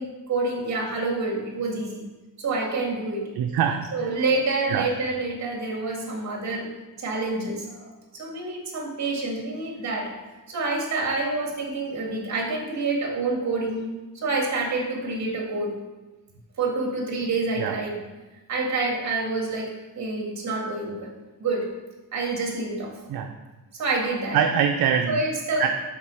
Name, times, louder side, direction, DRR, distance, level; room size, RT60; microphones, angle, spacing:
voice 1, 0.0-2.0 2.4-3.2 3.9-6.7 7.0-10.1 10.5-13.8 14.2-15.7 16.6-18.0 18.5-21.1 21.4-21.6 22.1-22.9 23.7-24.4 25.1-25.7, right 3 dB, 50° right, 0 dB, 1.9 m, -27 dB
voice 2, 3.3-4.1 4.7-4.9 17.6-17.8 23.1-23.3 24.3-25.2 25.6-25.7, right 8 dB, 70° right, 4 dB, 0.6 m, -23 dB
7.3 x 4.0 x 6.2 m, 1.1 s
wide cardioid pair, 175°, 37 cm